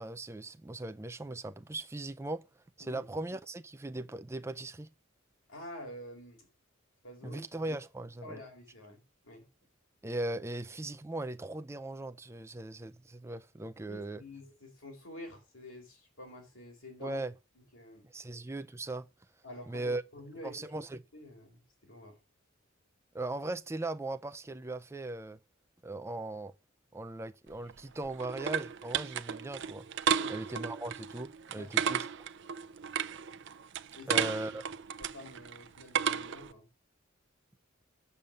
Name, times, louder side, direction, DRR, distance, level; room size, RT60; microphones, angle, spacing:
voice 1, 0.0-2.4 2.8-4.9 7.2-8.4 10.0-14.2 17.0-17.3 18.1-19.1 19.7-20.0 20.4-21.0 23.1-25.4 25.8-26.5 26.9-29.9 30.3-32.1 34.1-34.6, right 2 dB, 15° right, 0.4 m, -38 dB
voice 2, 5.5-6.5 7.0-7.4 8.2-9.5 13.9-17.2 17.5-18.1 19.4-20.6 21.1-22.2 30.1-30.4 31.5-31.7 33.9-34.6 35.0-36.7, left 1 dB, 80° left, 4.7 m, -48 dB
sound 1, 27.5-36.5, right 8 dB, 60° right, 0.6 m, -34 dB
6.9 x 6.9 x 7.5 m
head